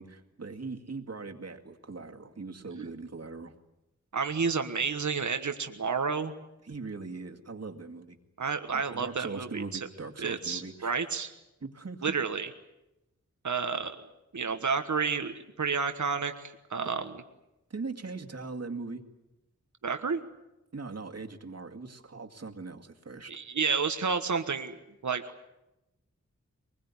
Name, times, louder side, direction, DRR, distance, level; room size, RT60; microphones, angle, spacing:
voice 1, 0.0-3.5 6.6-8.2 8.7-10.9 11.6-12.2 17.7-19.0 20.7-23.3, right 4 dB, 60° right, 4 dB, 2.2 m, -40 dB
voice 2, 4.1-6.3 8.4-9.8 10.2-11.3 12.0-12.5 13.4-14.0 14.3-17.0 19.8-20.2 23.3-25.3, right 5 dB, 75° right, 8 dB, 1.4 m, -30 dB
23.5 x 21.0 x 9.8 m, 0.93 s
wide cardioid pair, 80°, 29 cm